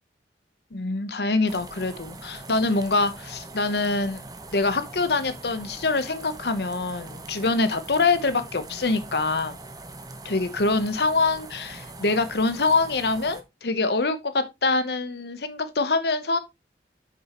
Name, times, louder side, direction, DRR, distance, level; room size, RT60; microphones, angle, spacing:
voice 1, 0.7-4.2 4.5-9.6 10.2-16.4, left 3 dB, 65° left, 1.0 m, -25 dB
sound 1, 1.5-13.4, right 2 dB, 20° right, 1.0 m, -42 dB
8.7 x 6.5 x 3.0 m
head